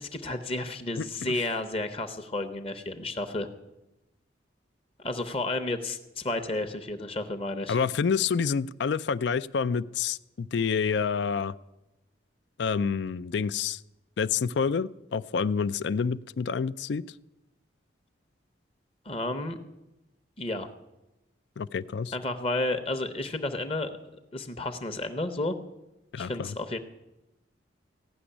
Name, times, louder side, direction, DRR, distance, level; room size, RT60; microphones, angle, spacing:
voice 1, 0.0-3.5 5.0-7.8 19.0-19.6 20.4-20.7 22.1-23.9 24.3-25.6 26.2-26.8, left 2 dB, 30° left, 7 dB, 0.7 m, -31 dB
voice 2, 1.0-1.3 7.7-11.5 12.6-13.8 14.2-17.0 21.6-22.1 26.1-26.5, left 6 dB, 65° left, 17 dB, 0.4 m, -28 dB
15.5 x 6.1 x 9.9 m, 0.97 s
head